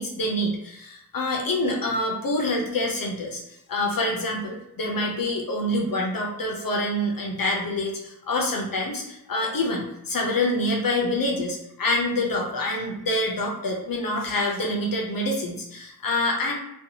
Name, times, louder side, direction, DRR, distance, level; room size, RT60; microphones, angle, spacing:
voice 1, 0.0-3.4 3.7-16.5, left 1 dB, 65° left, 0 dB, 0.6 m, -26 dB
2.6 x 2.3 x 2.7 m, 0.82 s
wide cardioid pair, 75°, 36 cm